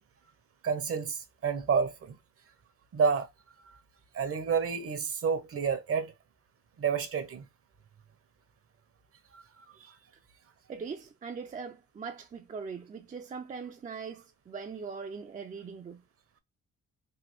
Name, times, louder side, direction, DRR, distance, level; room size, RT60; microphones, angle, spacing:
voice 1, 0.6-2.2 2.9-3.3 4.1-6.1 6.8-7.5 9.3-9.4, right 6 dB, 50° right, 0.8 m, -29 dB
voice 2, 10.7-16.0, right 5 dB, 25° right, 0.4 m, -41 dB
3.3 x 2.2 x 2.9 m
cardioid pair, 90°, 30 cm